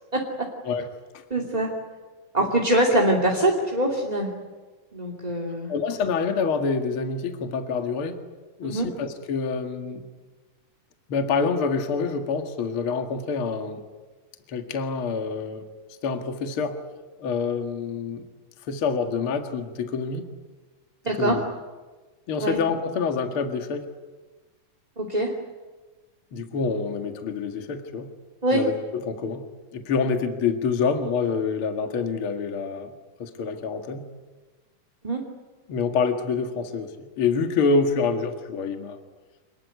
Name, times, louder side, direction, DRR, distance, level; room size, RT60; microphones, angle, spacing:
voice 1, 1.3-1.7 2.3-4.3 4.9-5.7 8.6-8.9 21.0-21.4 22.4-22.6 25.0-25.3 28.4-28.6 35.0-35.2, right 1 dB, 15° right, 0 dB, 2.5 m, -23 dB
voice 2, 5.7-8.2 8.6-10.0 11.1-13.8 14.5-15.6 16.0-16.8 17.2-18.2 18.7-20.3 21.2-21.4 22.3-23.9 26.3-28.1 28.5-28.7 29.1-29.4 29.7-32.9 33.2-34.0 35.7-39.0, left 5 dB, 45° left, 5 dB, 2.4 m, -26 dB
27.5 x 21.0 x 9.6 m, 1.3 s
omnidirectional pair, 3.8 m